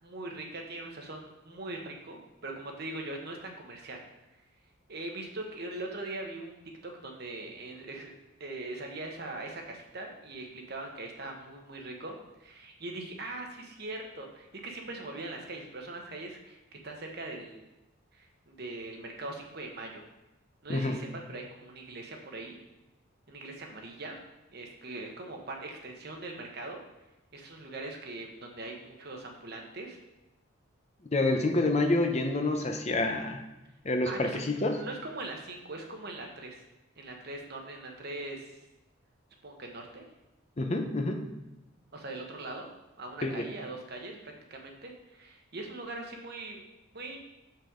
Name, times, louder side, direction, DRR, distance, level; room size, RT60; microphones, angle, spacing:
voice 1, 0.0-4.0 4.9-6.6 6.8-8.1 8.4-17.6 18.1-20.0 20.6-22.6 23.3-24.2 24.5-26.8 27.3-30.0 34.1-36.6 37.0-38.5 39.4-40.1 41.9-42.7 43.0-46.6 46.9-47.2, right 2 dB, 50° right, 2 dB, 1.0 m, -41 dB
voice 2, 31.1-33.4 33.8-34.7 40.6-41.3 43.2-43.5, left 2 dB, 30° left, 4 dB, 0.6 m, -28 dB
6.9 x 5.6 x 3.7 m, 0.95 s
head